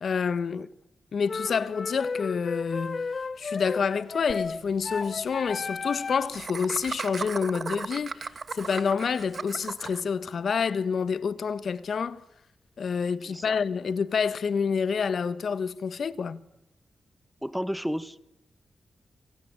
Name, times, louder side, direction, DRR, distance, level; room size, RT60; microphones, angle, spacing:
voice 1, 0.0-0.7 1.1-3.0 3.4-12.2 12.8-16.4, left 6 dB, 65° left, 1.4 m, -28 dB
sound 1, 1.3-6.4, left 4 dB, 45° left, 1.0 m, -34 dB
Laughter, 4.3-4.4 4.7-4.8 5.0-5.1 6.3-10.0, right 4 dB, 50° right, 1.8 m, -36 dB
voice 2, 13.2-13.6 17.4-18.2, equal, ahead, 1.2 m, -33 dB
27.0 x 25.0 x 8.9 m
cardioid pair, 90°, 0 cm